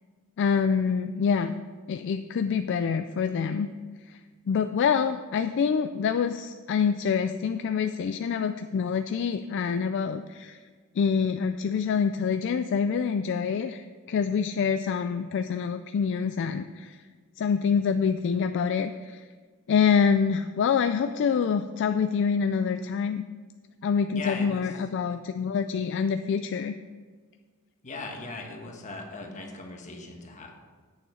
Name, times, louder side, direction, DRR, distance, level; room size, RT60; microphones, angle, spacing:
voice 1, 0.4-1.5 1.9-3.7 4.1-4.2 4.5-10.6 11.0-17.0 17.4-19.2 19.7-23.2 23.8-26.8, left 6 dB, 55° left, 9 dB, 0.3 m, -26 dB
voice 2, 24.1-24.7 27.8-30.5, left 3 dB, 35° left, 1 dB, 1.3 m, -39 dB
8.6 x 6.9 x 5.0 m, 1.5 s
head